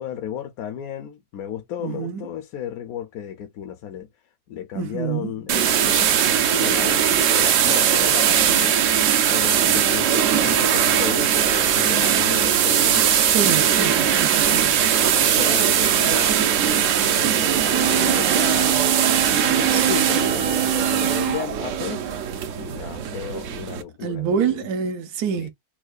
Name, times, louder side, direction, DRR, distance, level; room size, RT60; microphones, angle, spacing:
voice 1, 0.0-4.1 4.5-8.8 9.3-13.2 13.7-14.3 15.0-16.3 16.7-18.9 19.3-22.0 22.5-24.7 25.4-25.5, left 9 dB, 75° left, 1.0 m, -34 dB
voice 2, 1.8-2.2 4.7-5.3 13.3-14.8 24.0-25.5, right 7 dB, 85° right, 1.3 m, -26 dB
sound 1, 5.5-23.8, right 9 dB, 65° right, 0.9 m, -20 dB
sound 2, 17.7-22.8, right 9 dB, 50° right, 0.4 m, -26 dB
4.5 x 2.2 x 2.3 m
omnidirectional pair, 1.6 m